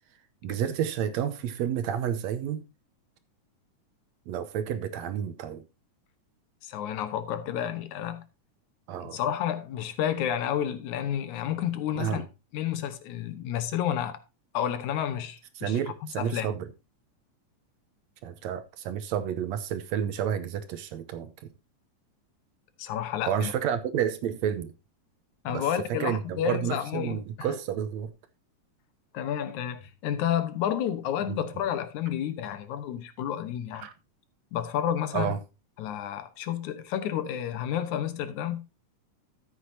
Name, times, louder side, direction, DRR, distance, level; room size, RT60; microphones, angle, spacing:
voice 1, 0.4-2.6 4.3-5.6 8.9-9.2 12.0-12.3 15.6-16.7 18.2-21.3 23.2-24.7 25.5-25.6 25.9-28.1 31.3-31.4 33.8-33.9 35.1-35.4, right 9 dB, 70° right, 1.9 m, -30 dB
voice 2, 6.6-8.2 9.0-12.2 12.5-14.2 14.5-16.5 22.8-23.5 25.4-27.2 29.1-33.9 34.5-35.4 35.8-38.6, left 10 dB, 75° left, 2.4 m, -30 dB
13.5 x 8.1 x 2.7 m
omnidirectional pair, 3.5 m